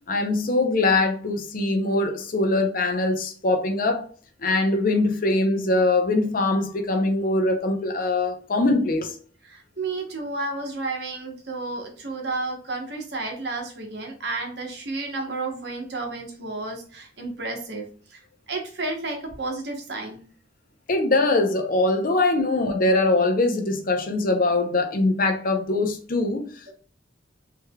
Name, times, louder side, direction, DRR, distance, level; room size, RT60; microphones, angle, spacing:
voice 1, 0.1-4.0 4.4-9.2 20.9-26.5, left 2 dB, 45° left, 0.6 m, -22 dB
voice 2, 9.4-17.8 18.1-18.2 18.5-20.2 26.7-26.8, right 3 dB, 60° right, 0.9 m, -31 dB
3.4 x 3.2 x 2.2 m
head